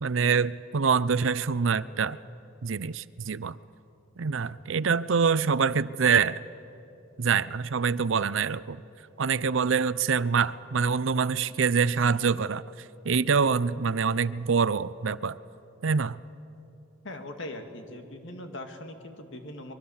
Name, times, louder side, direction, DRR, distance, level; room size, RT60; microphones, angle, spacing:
voice 1, 0.0-2.2 2.6-3.6 4.2-6.4 7.2-8.8 9.2-12.6 13.0-15.4 15.8-16.2, right 5 dB, 70° right, 17 dB, 0.6 m, -25 dB
voice 2, 17.0-19.7, left 1 dB, 65° left, 5 dB, 2.2 m, -40 dB
24.0 x 22.0 x 7.2 m, 2.9 s
head